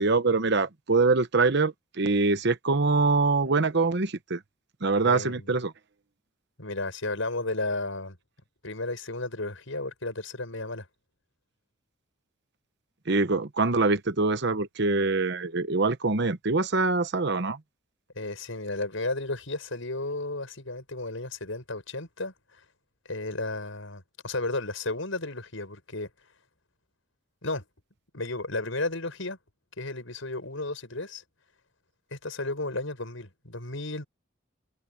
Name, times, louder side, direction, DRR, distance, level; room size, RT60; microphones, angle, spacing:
voice 1, 0.0-4.4 4.8-5.7 13.1-17.6, right 3 dB, 55° right, 1.0 m, -24 dB
voice 2, 5.0-5.5 6.6-8.2 8.6-10.9 18.1-22.3 23.1-26.1 27.4-27.6 28.1-29.4 29.8-31.2 32.1-34.1, left 2 dB, 75° left, 6.8 m, -33 dB
head